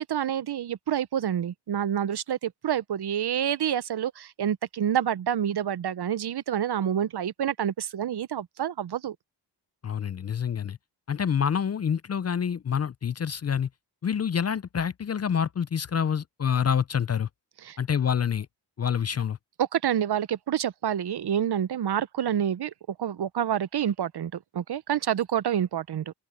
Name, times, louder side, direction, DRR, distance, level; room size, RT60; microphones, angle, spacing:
voice 1, 0.0-9.2 17.6-17.8 19.6-22.7 23.0-26.1, right 9 dB, 60° right, 0.6 m, -28 dB
voice 2, 9.8-10.8 11.1-13.7 14.0-17.3 17.8-18.5 18.8-19.4, left 7 dB, 40° left, 0.4 m, -27 dB
open air
wide cardioid pair, 105°, 43 cm